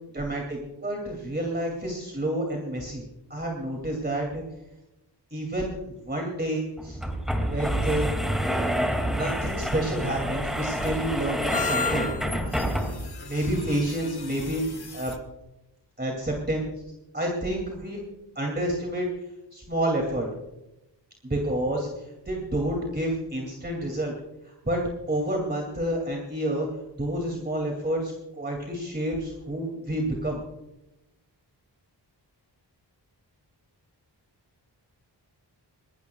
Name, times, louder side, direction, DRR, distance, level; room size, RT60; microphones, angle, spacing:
voice 1, 0.1-3.0 3.3-4.4 5.3-7.0 7.4-8.1 8.5-12.1 13.2-14.6 14.9-15.1 16.0-16.6 17.1-18.0 18.4-19.1 19.5-20.3 21.2-24.1 24.4-24.8 25.1-26.7 27.0-30.4, right 1 dB, 25° right, 0 dB, 2.7 m, -29 dB
sound 1, 5.6-5.7 6.0-6.1 6.8-13.2, equal, ahead, 2.4 m, -28 dB
sound 2, 9.6-15.2, left 5 dB, 65° left, 1.6 m, -36 dB
24.0 x 19.5 x 2.4 m, 0.95 s
wide cardioid pair, 120°, 42 cm